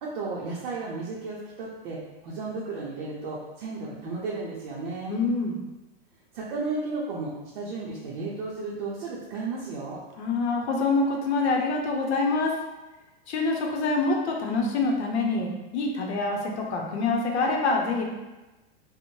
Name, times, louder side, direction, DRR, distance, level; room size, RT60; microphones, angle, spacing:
voice 1, 0.0-5.2 6.3-10.0, right 3 dB, 50° right, -4 dB, 0.5 m, -34 dB
voice 2, 5.1-5.6 10.2-12.6 13.3-18.0, left 3 dB, 80° left, 0 dB, 0.7 m, -26 dB
2.6 x 2.1 x 3.0 m, 1.1 s
supercardioid pair, 150°, 33 cm